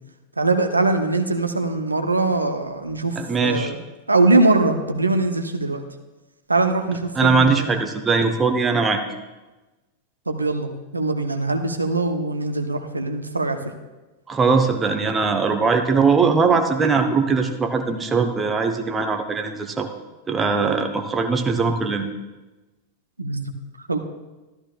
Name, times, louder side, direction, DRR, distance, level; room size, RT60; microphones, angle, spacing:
voice 1, 0.4-3.8 4.1-5.8 6.5-7.8 8.2-8.3 10.3-13.6 23.2-23.5 23.9-24.0, right 2 dB, 80° right, 6 dB, 0.8 m, -22 dB
voice 2, 3.2-3.7 7.1-9.0 14.3-19.9 20.3-22.1, right 4 dB, 15° right, 5 dB, 1.0 m, -20 dB
13.5 x 13.0 x 2.4 m, 1.1 s
figure-of-eight pair, 90°, 0 cm